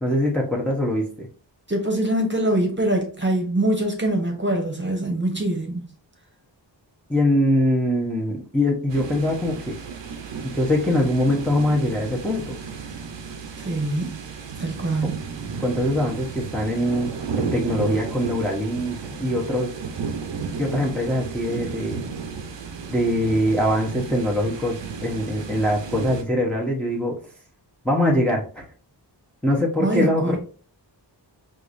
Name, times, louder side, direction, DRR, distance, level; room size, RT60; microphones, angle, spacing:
voice 1, 0.0-1.3 7.1-9.8 10.4-12.5 15.6-19.7 20.6-22.1 22.9-27.2 27.8-28.6 29.4-30.4, left 1 dB, 5° left, 0.9 m, -23 dB
voice 2, 1.7-5.9 13.6-14.2 14.6-15.3 29.8-30.4, right 1 dB, 25° right, 1.0 m, -23 dB
sound 1, 8.9-26.2, right 5 dB, 75° right, 0.7 m, -33 dB
4.7 x 2.6 x 2.5 m
wide cardioid pair, 60°, 44 cm